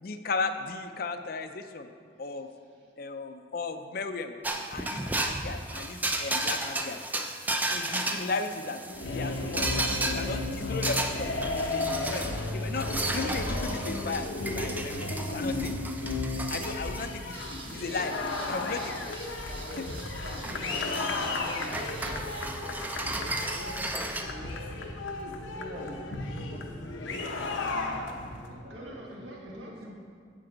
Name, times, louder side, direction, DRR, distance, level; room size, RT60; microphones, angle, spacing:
voice 1, 0.0-1.9 2.2-2.5 3.0-4.3 4.7-7.0 7.7-12.3 12.5-12.9 13.1-15.8 16.5-17.4 17.7-18.1 18.5-19.1, left 4 dB, 50° left, 8 dB, 0.5 m, -35 dB
voice 2, 2.5-2.9 7.8-8.1 24.4-24.5 28.5-29.9, equal, 80° right, -2 dB, 1.7 m, -47 dB
sound 1, 4.4-24.2, right 2 dB, 10° right, 0.4 m, -35 dB
sound 2, 8.9-28.5, left 2 dB, 85° left, 0.8 m, -34 dB
sound 3, 17.3-22.6, right 3 dB, 30° right, 1.0 m, -47 dB
voice 3, 19.5-22.9 23.5-24.0 24.2-24.6 25.4-29.7, equal, 55° right, -2 dB, 1.6 m, -45 dB
9.8 x 7.7 x 3.9 m, 2.2 s
head